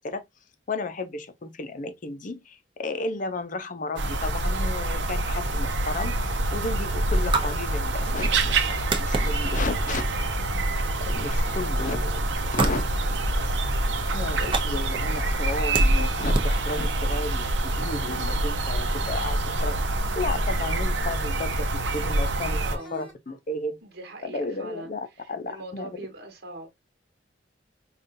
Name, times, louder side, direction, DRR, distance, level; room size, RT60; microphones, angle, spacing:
voice 1, 0.7-6.2 6.5-10.3 11.0-12.8 14.1-19.8 20.2-22.6 22.9-23.8 24.2-26.0, left 2 dB, 45° left, 0.6 m, -33 dB
sound 1, 3.9-23.1, equal, 5° left, 1.3 m, -48 dB
sound 2, 4.0-22.8, right 2 dB, 75° right, 0.7 m, -26 dB
sound 3, 7.3-17.4, right 3 dB, 25° right, 0.7 m, -35 dB
voice 2, 22.6-23.1 23.8-26.8, right 2 dB, 55° right, 1.3 m, -41 dB
5.2 x 2.4 x 2.6 m
head